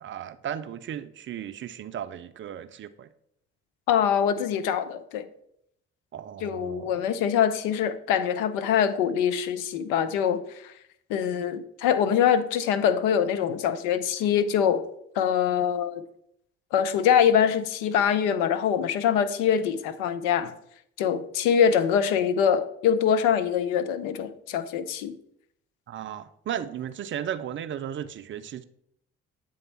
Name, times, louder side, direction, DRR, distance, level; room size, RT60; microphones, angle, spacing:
voice 1, 0.0-3.1 6.1-7.1 25.9-28.6, right 9 dB, 35° right, 0.5 m, -35 dB
voice 2, 3.9-5.2 6.4-10.7 11.1-14.8 15.2-16.0 16.7-20.5 21.0-25.1, left 8 dB, 65° left, 0.6 m, -24 dB
7.8 x 3.5 x 4.2 m
figure-of-eight pair, 45°, 35 cm